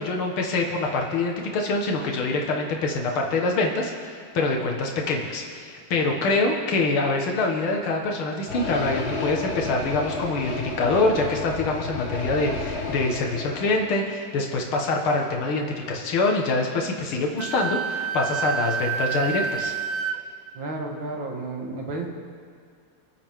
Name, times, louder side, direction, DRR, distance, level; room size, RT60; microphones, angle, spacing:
voice 1, 0.0-19.7, left 3 dB, 75° left, 1 dB, 2.4 m, -25 dB
sound 1, 8.5-13.9, left 3 dB, 35° left, 1.2 m, -31 dB
Wind instrument woodwind instrument, 17.4-20.2, right 7 dB, 90° right, 0.7 m, -28 dB
voice 2, 20.6-22.1, right 2 dB, 65° right, 1 dB, 2.5 m, -32 dB
27.5 x 10.0 x 3.7 m, 2.3 s
omnidirectional pair, 2.3 m